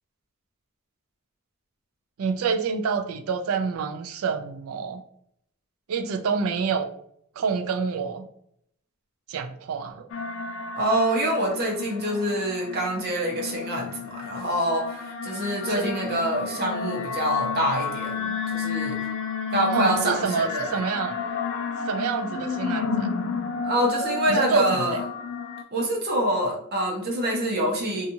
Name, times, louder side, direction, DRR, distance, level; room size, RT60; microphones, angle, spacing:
voice 1, 2.2-5.0 5.9-6.9 7.4-8.3 9.3-10.1 15.7-15.9 19.7-21.2 21.9-23.1 24.3-24.8, right 5 dB, 75° right, 6 dB, 0.4 m, -27 dB
sound 1, 10.1-25.6, left 5 dB, 65° left, 0.3 m, -31 dB
voice 2, 10.8-19.0 19.5-20.7 23.6-25.0 25.7-28.1, right 1 dB, 45° right, -1 dB, 0.7 m, -26 dB
2.7 x 2.4 x 2.6 m, 0.68 s
head